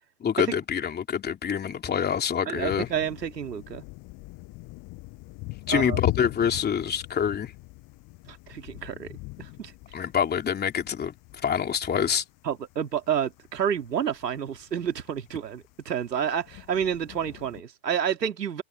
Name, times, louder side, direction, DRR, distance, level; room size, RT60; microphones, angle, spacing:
voice 1, 0.2-2.9 5.7-7.5 9.9-11.1 11.4-12.2, left 8 dB, 20° left, 3.2 m, -26 dB
voice 2, 2.5-3.8 5.7-6.0 8.3-9.7 12.4-18.6, right 8 dB, 85° right, 2.7 m, -29 dB
sound 1, 2.6-17.6, left 24 dB, 40° left, 7.6 m, -40 dB
hypercardioid pair, 110°, 48 cm